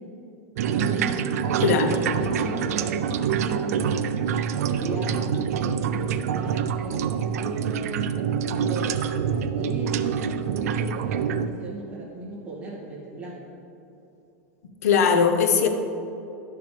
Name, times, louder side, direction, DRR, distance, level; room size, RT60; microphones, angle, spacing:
sound 1, 0.6-11.5, right 7 dB, 85° right, 0.5 m, -26 dB
voice 1, 0.7-1.4 1.8-4.2 4.8-8.1 8.4-13.4, right 3 dB, 15° right, -6 dB, 2.2 m, -35 dB
voice 2, 1.6-2.0 14.8-15.7, left 6 dB, 80° left, 6 dB, 1.0 m, -19 dB
12.0 x 6.8 x 3.4 m, 2.8 s
supercardioid pair, 155°, 8 cm